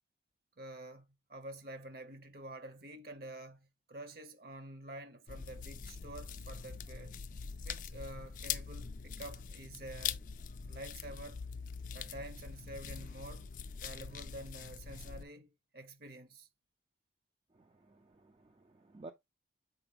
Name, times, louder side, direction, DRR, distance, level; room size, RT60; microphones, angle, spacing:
voice 1, 0.6-7.2 7.6-10.2 10.7-11.4 11.9-13.5 13.8-16.5, right 1 dB, 55° right, 1.0 m, -48 dB
sound 1, 5.3-15.2, left 7 dB, 45° left, 0.4 m, -43 dB
voice 2, 17.5-19.1, right 2 dB, 30° right, 0.4 m, -54 dB
6.8 x 4.5 x 3.4 m
head